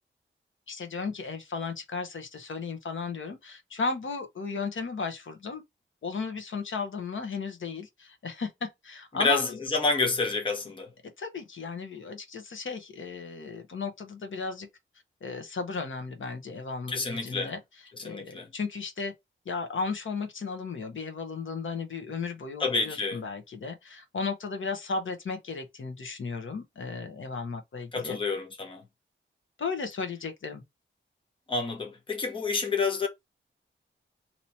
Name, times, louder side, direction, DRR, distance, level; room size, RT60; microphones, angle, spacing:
voice 1, 0.7-5.6 6.0-9.6 11.2-14.7 15.2-17.6 18.0-19.1 19.4-28.2 29.6-30.6, left 4 dB, 70° left, 1.0 m, -35 dB
voice 2, 9.2-10.9 16.9-17.5 18.0-18.5 22.6-23.2 27.9-28.8 31.5-33.1, left 4 dB, 25° left, 0.8 m, -28 dB
2.9 x 2.8 x 4.3 m
wide cardioid pair, 175°, 21 cm